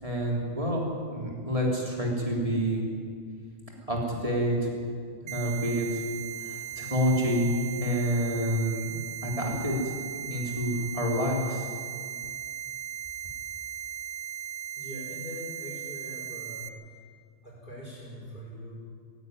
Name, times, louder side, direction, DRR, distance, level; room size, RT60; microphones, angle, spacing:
voice 1, 0.0-2.8 3.9-4.7 5.3-6.1 6.4-9.8 10.2-11.7, equal, 25° right, -2 dB, 3.7 m, -28 dB
sound 1, 5.3-16.7, right 10 dB, 70° right, 1.3 m, -38 dB
voice 2, 14.8-16.6 17.4-18.7, left 1 dB, 35° left, -9 dB, 5.5 m, -42 dB
17.0 x 16.0 x 9.6 m, 2.1 s
omnidirectional pair, 1.4 m